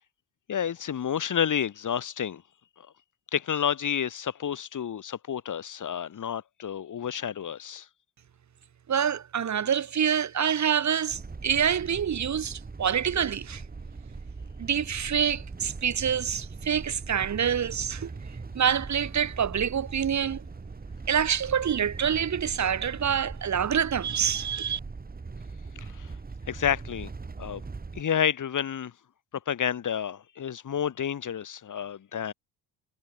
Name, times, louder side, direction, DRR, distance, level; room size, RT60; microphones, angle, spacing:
voice 1, 0.5-2.4 3.3-7.9 25.8-26.1 26.5-27.1 27.4-27.6 28.0-28.9 29.5-32.3, left 8 dB, 45° left, 3.7 m, -30 dB
voice 2, 8.9-13.6 14.6-18.1 18.5-20.4 21.1-24.8, right 8 dB, 40° right, 2.1 m, -26 dB
sound 1, 11.1-28.0, right 4 dB, 20° right, 3.1 m, -40 dB
cardioid pair, 90°, 42 cm